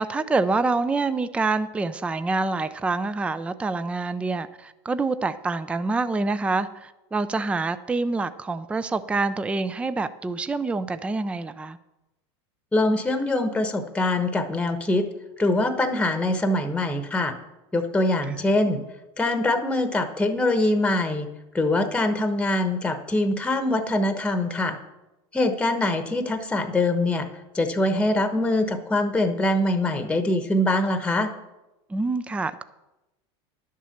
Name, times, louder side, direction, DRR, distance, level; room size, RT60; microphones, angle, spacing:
voice 1, 0.0-11.8 31.9-32.6, right 3 dB, 10° right, 13 dB, 0.4 m, -26 dB
voice 2, 12.7-15.0 15.4-17.3 17.7-18.8 19.2-21.3 21.5-24.8 25.3-27.3 27.5-31.3, left 1 dB, 5° left, 8 dB, 1.1 m, -23 dB
11.0 x 7.4 x 7.2 m, 0.99 s
supercardioid pair, 125°, 15 cm